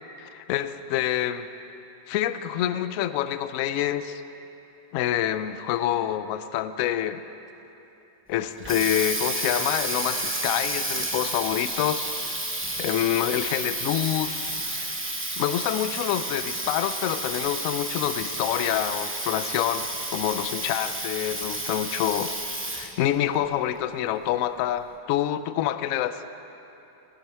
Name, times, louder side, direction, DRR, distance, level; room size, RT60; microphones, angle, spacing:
voice 1, 0.2-1.5 2.1-4.2 4.9-7.2 8.3-12.1 12.8-14.9 15.4-22.3 22.7-26.2, left 12 dB, 70° left, 12 dB, 0.8 m, -27 dB
Water tap faucet, 8.3-23.0, right 1 dB, 15° right, 0.5 m, -31 dB
18.0 x 9.5 x 4.5 m, 2.9 s
omnidirectional pair, 1.8 m